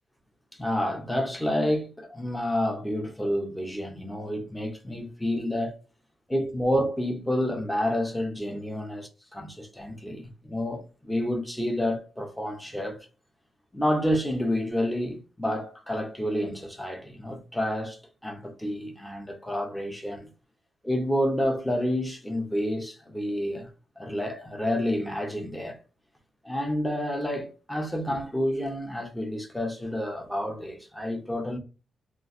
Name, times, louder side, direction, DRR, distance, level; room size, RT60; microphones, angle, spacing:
voice 1, 0.5-5.8 6.3-13.1 13.7-20.3 20.8-23.7 24.0-25.8 26.4-31.6, equal, 5° left, 0.7 m, -29 dB
3.0 x 2.5 x 2.5 m
wide cardioid pair, 135°, 0 cm